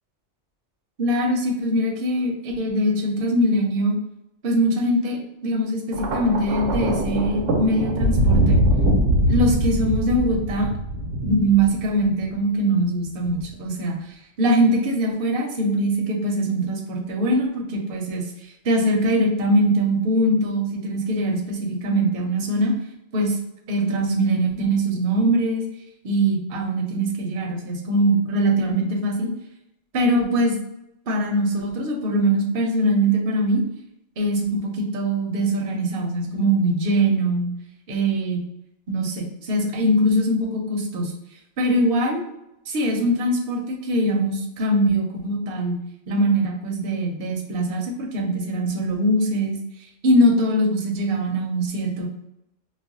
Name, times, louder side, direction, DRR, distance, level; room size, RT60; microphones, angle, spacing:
voice 1, 1.0-4.0 4.4-8.6 9.3-10.7 11.2-14.0 14.4-18.3 18.6-22.7 23.1-23.4 23.7-25.6 26.0-29.3 29.9-30.6 31.1-33.6 34.2-37.5 37.9-38.4 38.9-41.1 41.6-42.2 42.7-45.8 46.1-49.6 50.0-52.1, right 1 dB, 55° right, 0 dB, 0.8 m, -22 dB
Thunder, 5.9-12.3 13.3-13.5, right 1 dB, 90° right, 0.9 m, -22 dB
2.4 x 2.1 x 3.8 m, 0.84 s
omnidirectional pair, 1.2 m